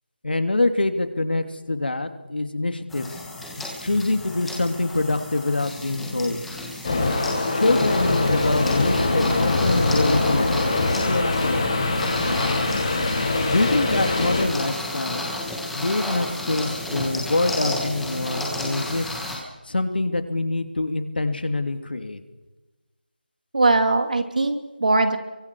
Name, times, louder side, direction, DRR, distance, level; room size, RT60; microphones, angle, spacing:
voice 1, 0.2-3.1 3.6-6.4 7.5-11.9 12.2-12.8 13.5-15.2 15.8-19.1 19.7-22.2, left 2 dB, 75° left, 8 dB, 2.8 m, -25 dB
sound 1, 2.9-19.4, left 1 dB, ahead, 1.5 m, -32 dB
sound 2, 6.8-14.5, left 2 dB, 30° left, 6.2 m, -23 dB
voice 2, 23.5-25.2, right 2 dB, 55° right, 7 dB, 2.8 m, -20 dB
29.5 x 23.5 x 4.8 m, 1.1 s
figure-of-eight pair, 175°, 5 cm